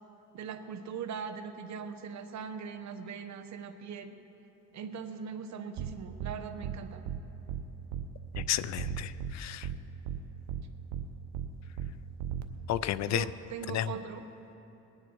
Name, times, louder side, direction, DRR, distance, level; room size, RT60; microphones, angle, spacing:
voice 1, 0.3-4.1 4.7-7.0 13.1-14.3, right 6 dB, 65° right, 8 dB, 1.0 m, -40 dB
sound 1, 5.8-5.9 6.2-6.3 6.6-6.8 7.1-7.2 7.5-7.6 7.9-8.0 8.3-8.5 8.8-9.3 9.6-9.8 10.1-10.2 10.5-10.6 10.9-11.0 11.3-11.5 11.8-11.9 12.2-12.4, right 9 dB, 90° right, 0.8 m, -35 dB
voice 2, 8.5-9.7 12.7-13.2 13.7-13.9, left 12 dB, 65° left, 16 dB, 0.5 m, -32 dB
21.0 x 9.9 x 4.6 m, 3.0 s
cardioid pair, 90°, 30 cm